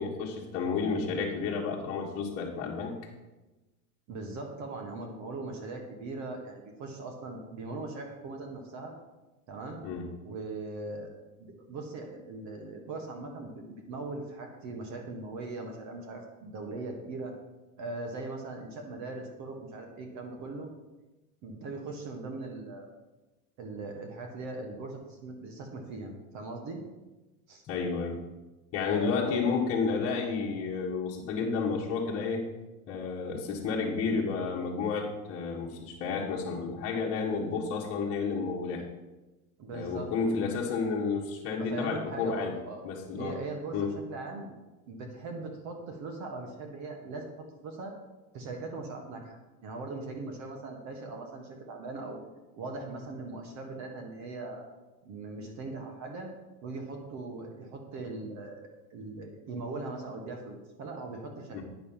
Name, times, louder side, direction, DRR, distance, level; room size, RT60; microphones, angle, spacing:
voice 1, 0.0-3.0 9.8-10.1 27.7-28.2 28.7-32.4 32.9-38.8 39.7-42.6 42.8-43.4 43.7-43.9 61.5-61.6, left 5 dB, 30° left, -4 dB, 1.6 m, -31 dB
voice 2, 4.1-8.9 9.5-9.8 10.2-11.1 11.4-17.3 17.8-20.7 21.4-22.9 23.6-26.8 27.5-27.6 28.9-29.5 39.6-40.4 41.6-42.8 43.2-44.5 44.9-47.9 48.3-52.2 52.6-54.6 55.0-56.3 56.6-61.6, right 3 dB, 40° right, 3 dB, 1.5 m, -40 dB
9.4 x 6.4 x 5.8 m, 1.1 s
supercardioid pair, 135°, 44 cm